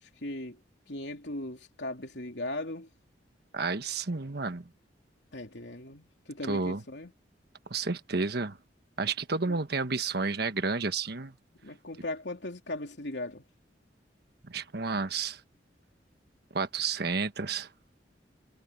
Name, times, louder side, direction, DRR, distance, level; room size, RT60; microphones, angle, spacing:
voice 1, 0.0-0.6 0.9-2.9 5.3-7.1 9.5-9.6 11.6-13.4, left 1 dB, 70° left, 3.4 m, -38 dB
voice 2, 3.5-4.7 6.4-6.8 7.7-8.6 9.0-11.3 14.5-15.4 16.5-17.7, right 4 dB, 65° right, 1.4 m, -31 dB
head